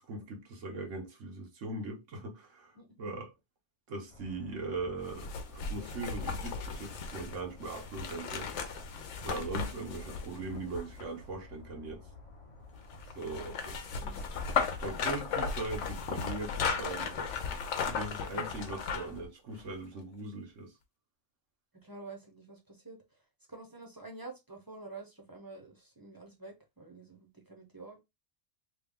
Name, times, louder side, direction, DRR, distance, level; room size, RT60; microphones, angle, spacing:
voice 1, 0.0-3.3 3.9-8.5 9.2-12.1 13.1-13.8 14.1-20.7, right 3 dB, 85° right, 1.3 m, -40 dB
sound 1, 4.1-19.3, left 2 dB, 30° left, 0.7 m, -52 dB
sound 2, 5.1-11.2 12.9-19.2 19.6-19.7, left 5 dB, 75° left, 1.0 m, -36 dB
voice 2, 14.0-14.3 21.7-23.2 23.5-28.0, right 3 dB, 20° right, 0.7 m, -48 dB
3.3 x 2.3 x 3.6 m
omnidirectional pair, 1.2 m